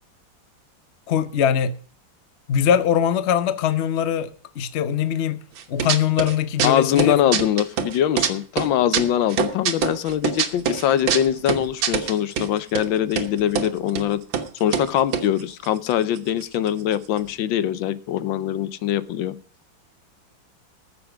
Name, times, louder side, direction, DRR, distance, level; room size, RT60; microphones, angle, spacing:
voice 1, 1.1-1.7 2.5-7.2, left 9 dB, 55° left, 0.8 m, -22 dB
sound 1, 5.6-6.3 6.6-8.3 8.6-12.5 12.8-12.9 13.1-13.7 14.0-14.1 14.3-14.5 14.7-16.4 16.7-16.8 16.9-17.3, right 7 dB, 85° right, 1.9 m, -24 dB
voice 2, 6.6-14.2 14.6-19.3, left 10 dB, 80° left, 1.5 m, -22 dB
14.0 x 7.0 x 6.0 m
omnidirectional pair, 2.1 m